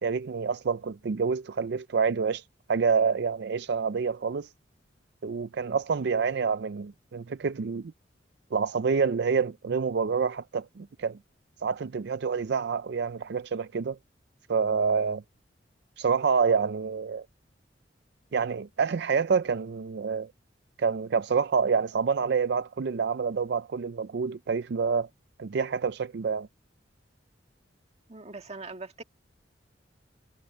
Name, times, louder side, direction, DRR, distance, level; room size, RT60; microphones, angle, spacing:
voice 1, 0.0-2.4 2.7-4.5 5.2-7.9 8.5-11.2 11.6-14.0 14.5-15.2 16.0-17.3 18.3-20.3 20.8-25.1 25.4-26.5, right 5 dB, 65° right, 0.4 m, -27 dB
voice 2, 28.1-29.0, right 3 dB, 35° right, 1.8 m, -41 dB
head